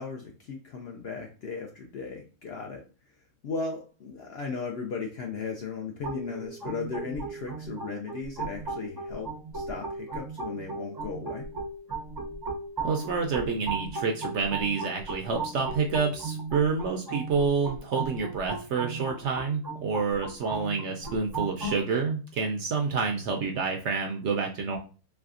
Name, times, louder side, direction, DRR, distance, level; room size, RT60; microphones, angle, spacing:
voice 1, 0.0-2.8 3.4-11.5, left 4 dB, 65° left, 2 dB, 0.6 m, -36 dB
sound 1, 6.0-21.8, right 3 dB, 30° right, 0.4 m, -36 dB
voice 2, 12.8-24.8, right 5 dB, 65° right, 3 dB, 0.7 m, -28 dB
3.4 x 3.2 x 2.4 m, 0.35 s
omnidirectional pair, 1.5 m